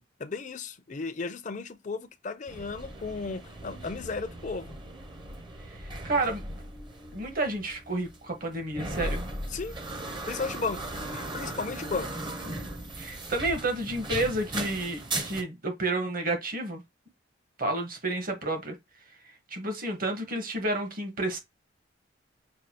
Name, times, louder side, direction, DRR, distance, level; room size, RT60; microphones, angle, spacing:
voice 1, 0.2-4.8 9.5-9.8 10.3-12.2, left 4 dB, 40° left, 0.5 m, -35 dB
sound 1, 2.5-15.4, right 1 dB, 25° right, 0.7 m, -38 dB
voice 2, 5.7-6.6 7.1-9.3 13.0-16.8 17.6-18.7 19.5-21.4, right 2 dB, 45° right, 1.2 m, -30 dB
6.3 x 2.4 x 2.8 m
head